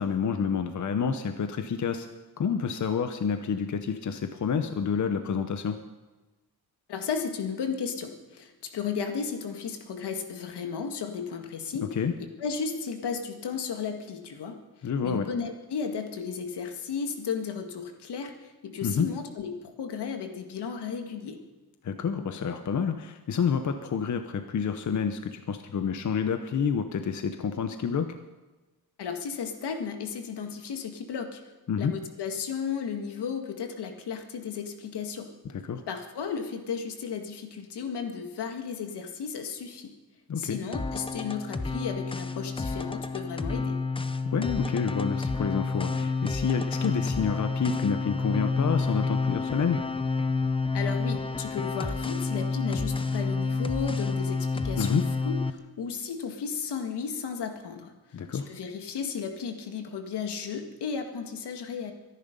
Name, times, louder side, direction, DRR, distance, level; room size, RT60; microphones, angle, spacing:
voice 1, 0.0-2.1 2.4-5.8 11.9-12.1 14.8-15.3 18.8-19.1 21.8-28.1 31.7-31.9 35.4-35.8 40.3-40.6 44.3-49.8 54.7-55.0 58.1-58.5, left 6 dB, 45° left, 8 dB, 0.9 m, -29 dB
voice 2, 6.9-21.4 29.0-31.4 31.8-35.3 35.9-39.9 40.4-43.8 50.7-57.9 58.3-61.9, left 6 dB, 80° left, 5 dB, 2.0 m, -34 dB
sound 1, 40.7-55.5, left 4 dB, 15° left, 0.7 m, -29 dB
23.5 x 11.0 x 5.3 m, 1.2 s
wide cardioid pair, 140°, 40 cm